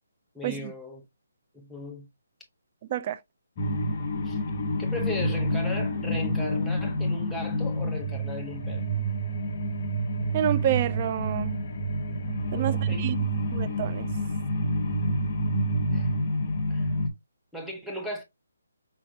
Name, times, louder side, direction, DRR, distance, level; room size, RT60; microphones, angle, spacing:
voice 1, 0.3-1.1 1.5-2.1 4.2-4.4 4.8-8.9 12.5-13.0 15.9-16.2 16.7-16.9 17.5-18.2, left 1 dB, ahead, 0.9 m, -37 dB
sound 1, 3.6-17.1, equal, 30° left, 1.1 m, -28 dB
voice 2, 10.3-11.6 12.5-14.1, right 11 dB, 25° right, 0.4 m, -29 dB
5.8 x 3.0 x 2.7 m
hypercardioid pair, 165°, 0 cm